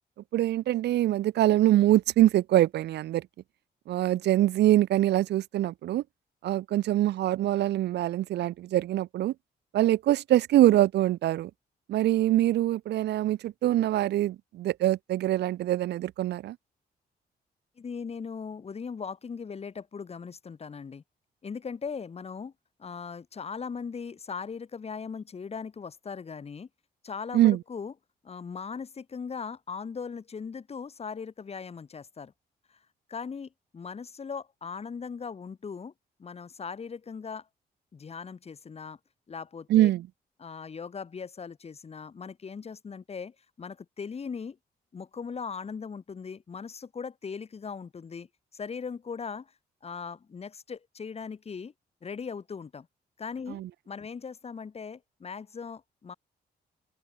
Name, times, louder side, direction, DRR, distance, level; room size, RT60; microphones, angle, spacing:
voice 1, 0.3-3.2 3.9-6.0 6.4-9.3 9.7-11.5 11.9-16.6 27.3-27.6 39.7-40.0 53.5-53.7, right 14 dB, 80° right, 0.7 m, -24 dB
voice 2, 17.8-21.0 21.4-22.5 22.8-26.7 27.0-27.9 28.2-32.3 33.1-35.9 36.2-37.5 37.9-39.0 39.3-39.9 40.4-44.6 44.9-48.3 48.5-49.5 49.8-51.7 52.0-52.9 53.2-56.1, left 5 dB, 35° left, 4.0 m, -39 dB
cardioid pair, 120°, 17 cm